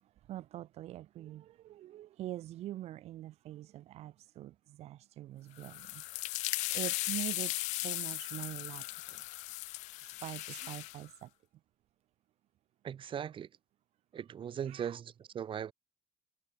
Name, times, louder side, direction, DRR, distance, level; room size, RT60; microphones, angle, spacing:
voice 1, 0.0-6.0 6.7-9.2 10.0-11.3 14.7-15.0, right 13 dB, 60° right, 0.5 m, -44 dB
sound 1, 5.6-11.0, left 20 dB, 80° left, 0.6 m, -37 dB
Sneeze, 8.1-8.3 10.4-10.7, right 18 dB, 80° right, 0.9 m, -54 dB
voice 2, 12.8-13.5 14.1-15.7, right 8 dB, 45° right, 0.9 m, -39 dB
cardioid pair, 90°, 12 cm